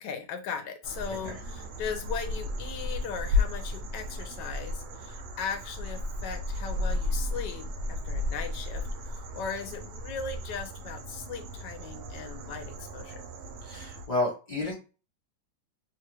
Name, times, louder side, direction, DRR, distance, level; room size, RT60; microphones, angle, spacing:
voice 1, 0.0-13.3, left 6 dB, 75° left, 6 dB, 1.2 m, -38 dB
Outside during the day ambience, 0.8-14.1, left 2 dB, 80° right, 1.2 m, -34 dB
voice 2, 13.6-14.7, left 2 dB, 40° left, -4 dB, 0.6 m, -31 dB
3.2 x 2.4 x 2.9 m, 0.33 s
omnidirectional pair, 1.9 m